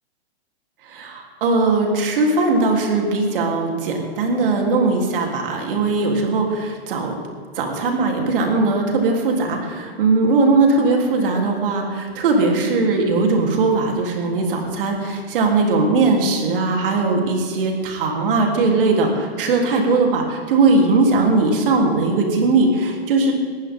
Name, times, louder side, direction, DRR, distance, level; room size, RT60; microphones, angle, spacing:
voice 1, 0.9-7.2 7.6-23.3, right 3 dB, 55° right, 1 dB, 3.6 m, -19 dB
21.5 x 15.0 x 3.8 m, 2.1 s
hypercardioid pair, 160°, 32 cm